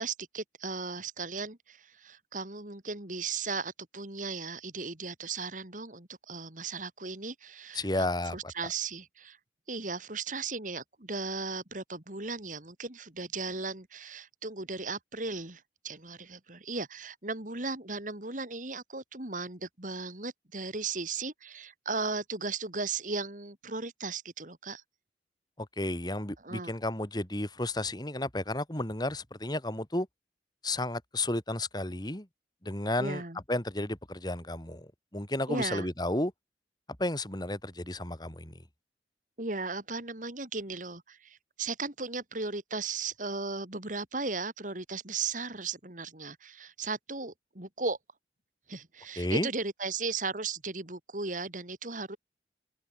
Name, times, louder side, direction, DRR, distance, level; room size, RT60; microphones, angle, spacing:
voice 1, 0.0-8.1 8.3-9.4 9.7-24.8 26.4-26.7 33.0-33.4 35.5-35.9 39.4-48.0 48.7-52.2, right 4 dB, 45° right, 3.0 m, -36 dB
voice 2, 7.7-8.5 25.6-30.1 30.6-32.3 32.6-33.2 33.5-36.3 37.0-38.5 49.2-49.5, left 1 dB, 25° left, 2.9 m, -32 dB
open air
head